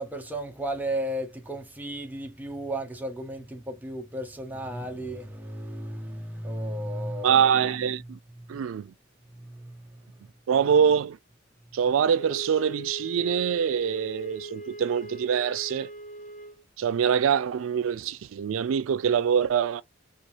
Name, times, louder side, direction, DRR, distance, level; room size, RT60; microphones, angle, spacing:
voice 1, 0.0-7.5 7.8-8.7 9.3-10.0 10.6-10.7, right 1 dB, 10° right, 0.6 m, -35 dB
voice 2, 7.2-8.2 8.5-8.9 10.5-11.2 11.7-15.9 16.8-19.8, right 7 dB, 85° right, 0.3 m, -24 dB
Wind instrument woodwind instrument, 12.1-16.6, right 2 dB, 40° left, 1.2 m, -40 dB
2.6 x 2.4 x 2.9 m
head